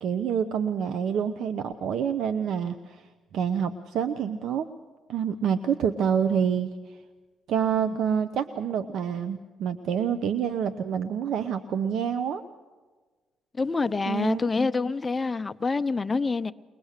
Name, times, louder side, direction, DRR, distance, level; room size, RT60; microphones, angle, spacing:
voice 1, 0.0-3.0 3.3-4.7 5.1-6.7 7.5-12.4 14.1-14.4, right 7 dB, 75° right, 0.7 m, -27 dB
voice 2, 13.5-16.5, left 4 dB, 25° left, 0.6 m, -26 dB
22.0 x 20.5 x 6.6 m
cardioid pair, 90°, 0 cm